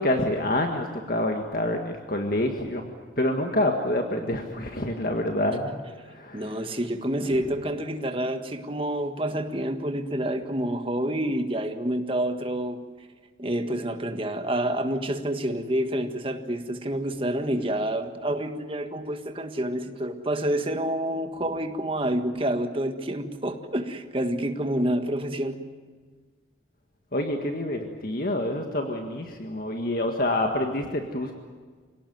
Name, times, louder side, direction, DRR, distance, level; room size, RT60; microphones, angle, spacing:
voice 1, 0.0-5.7 6.0-6.7 27.1-31.3, left 1 dB, 50° left, 3 dB, 1.8 m, -27 dB
voice 2, 6.3-12.8 13.4-25.6, right 1 dB, 30° right, 7 dB, 1.7 m, -28 dB
27.0 x 18.0 x 9.4 m, 1.5 s
head